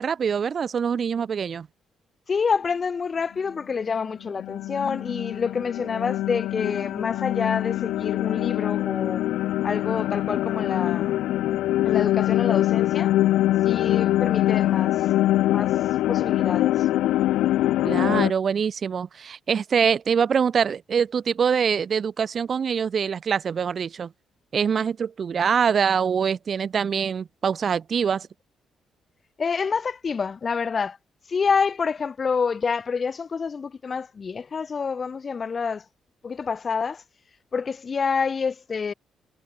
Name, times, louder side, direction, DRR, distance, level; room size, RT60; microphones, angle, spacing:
voice 1, 0.0-1.7 17.8-24.1 24.5-28.3, right 7 dB, 50° right, 1.7 m, -24 dB
voice 2, 2.3-9.2 9.6-11.2 11.8-13.1 13.6-15.0 15.5-15.8 16.1-16.9 29.4-31.0 31.3-35.8 36.2-37.0 37.5-38.9, left 5 dB, 40° left, 2.6 m, -27 dB
sound 1, 3.8-18.3, left 14 dB, 85° left, 4.0 m, -23 dB
cardioid pair, 90°, 0 cm